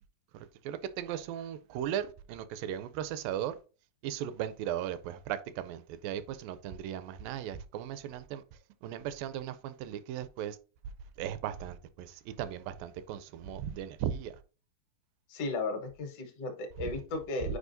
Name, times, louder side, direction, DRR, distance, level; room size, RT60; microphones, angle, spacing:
voice 1, 0.3-3.6 4.0-8.4 8.8-10.6 11.2-14.3, right 10 dB, 80° right, 2.1 m, -37 dB
voice 2, 15.3-17.6, left 3 dB, 60° left, 1.7 m, -35 dB
8.2 x 4.8 x 2.6 m
omnidirectional pair, 4.2 m